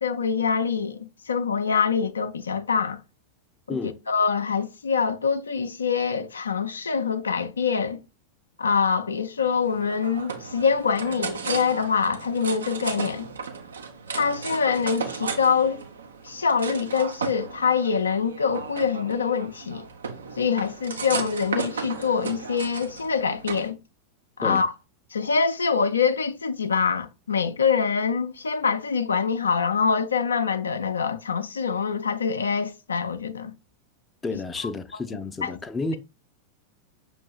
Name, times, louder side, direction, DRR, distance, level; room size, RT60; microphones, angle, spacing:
voice 1, 0.0-3.0 3.7-3.8 4.1-8.0 8.6-13.3 14.1-15.8 16.2-19.9 20.4-23.8 24.4-24.7 25.1-33.5 35.4-35.5, left 6 dB, 75° left, 0.4 m, -25 dB
sound 1, 9.4-23.7, right 5 dB, 70° right, 0.6 m, -35 dB
voice 2, 34.2-36.0, left 3 dB, 15° left, 0.5 m, -31 dB
6.0 x 3.2 x 2.3 m
figure-of-eight pair, 90°, 0 cm